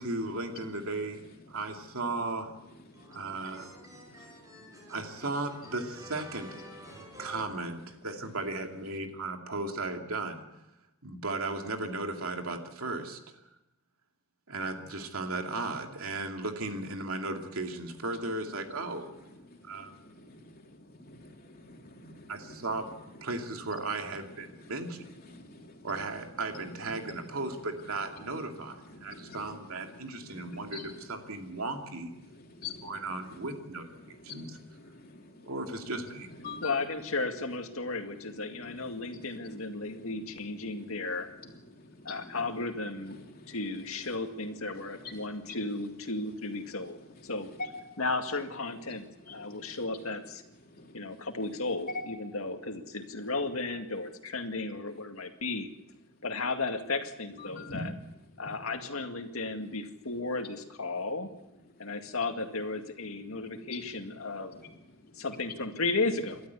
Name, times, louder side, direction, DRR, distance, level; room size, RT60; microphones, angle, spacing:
voice 1, 0.0-2.5 3.1-3.8 4.9-6.6 7.2-10.4 11.0-13.2 14.5-19.1 19.6-19.9 22.3-22.8 23.2-25.0 25.8-32.1 32.8-33.8 34.2-34.6 35.4-36.3, right 2 dB, 80° right, 4 dB, 2.7 m, -36 dB
voice 2, 2.7-5.2 5.6-5.7 6.7-7.5 18.7-19.1 19.4-23.4 23.7-24.0 24.4-26.1 26.4-27.5 27.8-27.9 28.2-31.6 32.2-33.7 34.0-36.8 38.0-38.1 38.4-41.1 41.4-42.4 43.0-43.6 44.0-45.6 46.6-46.8 47.6-48.0 48.9-49.8 50.6-51.3 51.9-52.0 56.1-56.2 57.4-57.8 58.7-58.8 61.7-61.9 63.3-63.8 64.3-65.2, left 3 dB, 45° left, 2 dB, 3.2 m, -48 dB
sound 1, 2.9-8.3, equal, 15° right, 4.6 m, -51 dB
voice 3, 36.6-41.3 42.0-43.2 43.5-47.5 48.0-50.4 50.9-55.7 56.2-57.9 58.4-61.3 61.8-64.5 65.1-66.4, left 3 dB, 75° left, 6 dB, 2.1 m, -34 dB
28.5 x 12.5 x 8.4 m, 0.92 s
head